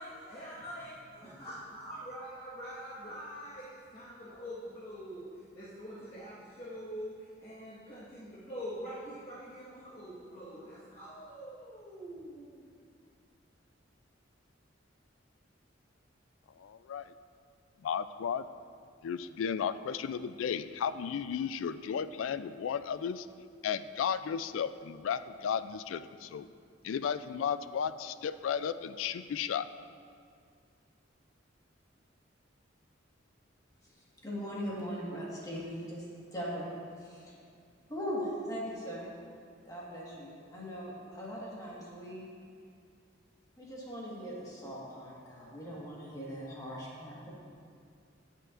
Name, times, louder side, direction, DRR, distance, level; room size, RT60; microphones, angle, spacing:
voice 1, 0.0-5.3 5.5-12.6, equal, 35° left, -11 dB, 1.5 m, -44 dB
voice 2, 16.6-17.1 17.8-18.4 19.0-23.3 23.6-26.5 26.8-29.7, left 7 dB, 90° left, 13 dB, 0.3 m, -34 dB
voice 3, 33.8-36.0 36.3-36.7 37.0-37.4 37.9-39.1 39.6-42.3 43.6-47.3, equal, 20° left, -6 dB, 1.5 m, -40 dB
16.5 x 5.6 x 2.5 m, 2.2 s
head